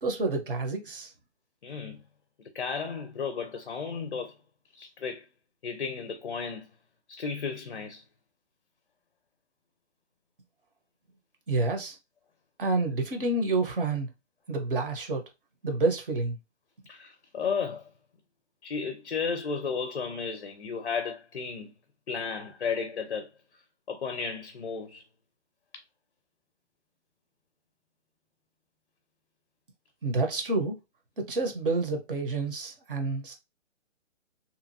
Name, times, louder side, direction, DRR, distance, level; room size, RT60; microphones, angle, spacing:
voice 1, 0.0-1.1 11.5-12.0 12.6-14.1 14.5-15.2 15.6-16.4 30.0-30.8 31.2-33.3, right 3 dB, 45° right, 0.9 m, -28 dB
voice 2, 1.6-2.0 2.5-4.3 4.7-5.2 5.6-6.6 7.1-8.0 16.9-17.9 18.6-21.7 22.1-23.3 23.9-25.0, left 5 dB, 50° left, 0.5 m, -33 dB
2.7 x 2.4 x 2.6 m
hypercardioid pair, 175°, 37 cm